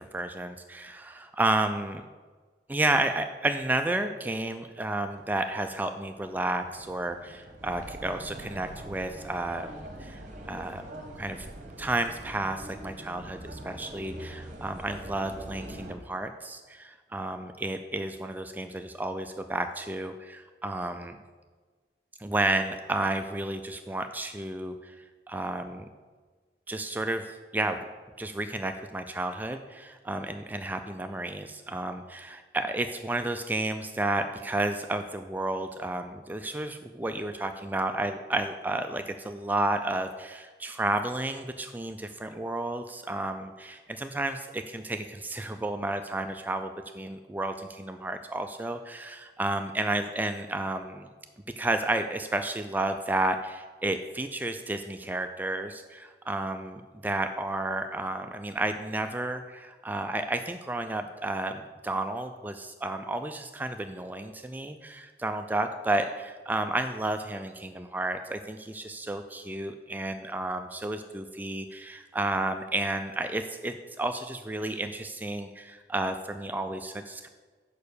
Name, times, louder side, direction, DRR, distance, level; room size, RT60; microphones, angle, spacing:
voice 1, 0.0-2.0 2.7-9.7 10.0-10.2 10.4-10.8 11.2-11.5 11.8-21.2 22.2-24.9 25.3-25.8 26.7-27.8 28.2-51.1 51.6-77.3, right 2 dB, 10° right, 7 dB, 0.3 m, -31 dB
sound 1, 5.1-15.9, right 1 dB, 40° right, 1.0 m, -44 dB
6.7 x 5.3 x 6.7 m, 1.4 s
head